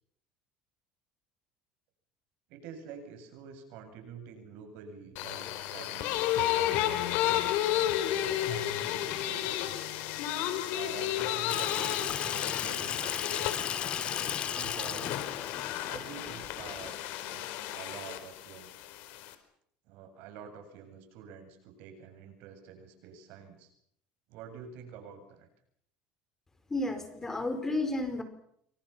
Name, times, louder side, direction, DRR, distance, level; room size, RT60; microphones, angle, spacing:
voice 1, 2.5-7.2 7.7-9.6 10.7-13.6 14.5-15.1 15.9-17.0 17.3-18.7 19.9-23.7 24.3-25.5, right 6 dB, 70° right, 7 dB, 8.0 m, -47 dB
sound 1, 5.2-19.3, left 12 dB, 70° left, 4.4 m, -32 dB
Water tap faucet / Sink (filling or washing), 11.5-16.9, left 8 dB, 35° left, 2.5 m, -35 dB
voice 2, 26.7-28.2, left 2 dB, 15° left, 8 dB, 4.7 m, -32 dB
28.0 x 26.5 x 6.0 m, 0.68 s
cardioid pair, 140°, 3 cm